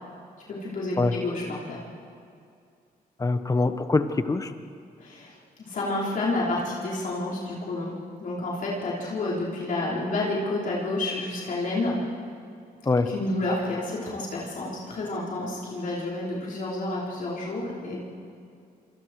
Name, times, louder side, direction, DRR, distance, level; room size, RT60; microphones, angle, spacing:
voice 1, 0.5-1.8 5.0-5.3 5.7-7.9 8.2-11.9 13.1-18.0, left 2 dB, 60° left, -5 dB, 5.0 m, -29 dB
voice 2, 3.2-4.5 12.8-13.1, left 3 dB, 20° left, 9 dB, 1.2 m, -24 dB
29.0 x 26.5 x 4.9 m, 2.3 s
cardioid pair, 135°, 16 cm